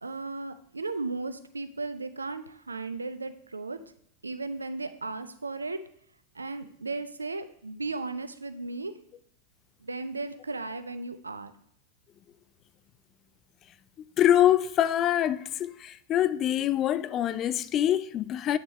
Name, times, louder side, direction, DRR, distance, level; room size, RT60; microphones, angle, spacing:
voice 1, 0.0-3.8 4.2-5.8 6.3-8.9 9.8-11.5, right 3 dB, 80° right, 0.5 m, -35 dB
voice 2, 14.2-18.6, left 11 dB, 30° left, 0.3 m, -24 dB
8.8 x 6.1 x 3.2 m
figure-of-eight pair, 90°, 0 cm